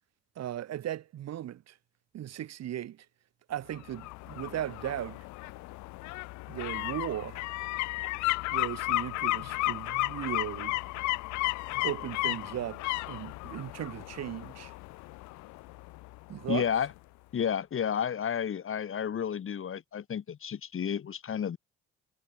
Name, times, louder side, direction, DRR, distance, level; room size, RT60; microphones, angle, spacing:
voice 1, 0.3-1.8 2.1-3.0 3.5-5.2 6.5-7.4 8.5-10.8 11.8-12.8 13.1-14.7 16.3-16.7, right 12 dB, 60° right, 5.0 m, -37 dB
sound 1, 3.7-16.5 16.9-17.0, left 21 dB, 70° left, 2.7 m, -34 dB
voice 2, 16.5-16.9 17.3-21.6, left 8 dB, 45° left, 2.2 m, -31 dB
hypercardioid pair, 55°, 29 cm